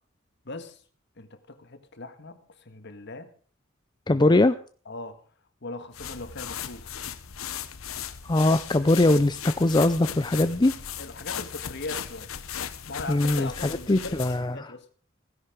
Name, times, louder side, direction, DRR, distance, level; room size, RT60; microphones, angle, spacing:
voice 1, 0.4-0.8 1.2-3.3 4.1-4.2 4.8-5.2 5.6-7.0 11.0-12.3 12.9-14.8, left 2 dB, 55° left, 1.6 m, -39 dB
voice 2, 4.1-4.6 8.3-10.7 13.1-13.5 13.9-14.7, left 2 dB, 20° left, 0.5 m, -21 dB
sound 1, 5.9-14.5, left 9 dB, 90° left, 1.0 m, -37 dB
16.0 x 10.5 x 5.1 m
head